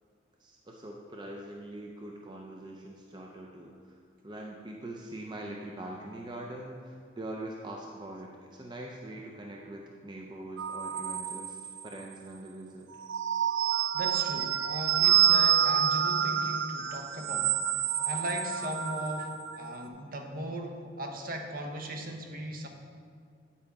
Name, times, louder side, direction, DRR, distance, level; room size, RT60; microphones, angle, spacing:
voice 1, 0.4-12.9, right 1 dB, 25° right, -1 dB, 0.5 m, -43 dB
sound 1, 10.6-12.0 12.9-19.6, right 9 dB, 90° right, 0.4 m, -27 dB
voice 2, 13.9-22.7, right 1 dB, 50° right, 3 dB, 0.9 m, -38 dB
8.8 x 8.5 x 3.5 m, 2.2 s
head